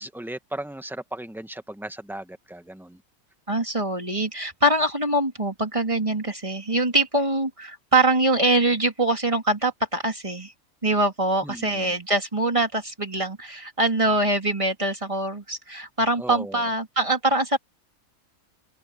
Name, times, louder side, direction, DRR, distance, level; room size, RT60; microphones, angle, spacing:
voice 1, 0.0-3.0 11.4-11.9 16.2-16.6, right 1 dB, ahead, 1.0 m, -36 dB
voice 2, 3.5-10.5 10.8-17.6, right 2 dB, 20° right, 2.9 m, -23 dB
open air
omnidirectional pair, 1.6 m